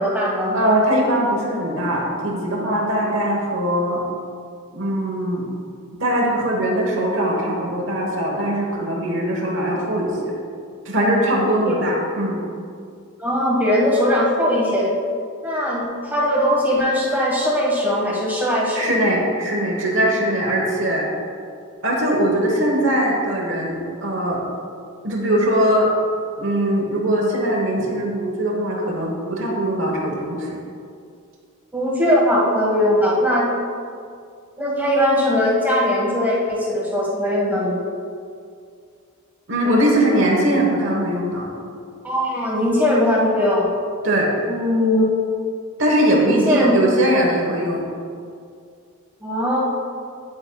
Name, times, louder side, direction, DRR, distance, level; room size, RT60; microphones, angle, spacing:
voice 1, 0.0-0.6 11.6-11.8 13.2-14.9 15.4-18.9 31.7-33.5 34.6-37.7 42.0-43.6 44.5-45.0 46.2-46.7 49.2-49.6, left 1 dB, 10° right, -5 dB, 1.4 m, -20 dB
voice 2, 0.5-4.0 4.7-5.4 6.0-10.3 10.8-12.4 18.7-21.1 21.8-24.4 25.0-25.9 26.4-30.6 39.5-41.5 44.0-44.3 45.8-47.8, right 1 dB, 60° right, -1 dB, 1.1 m, -21 dB
8.7 x 8.5 x 2.3 m, 2.3 s
head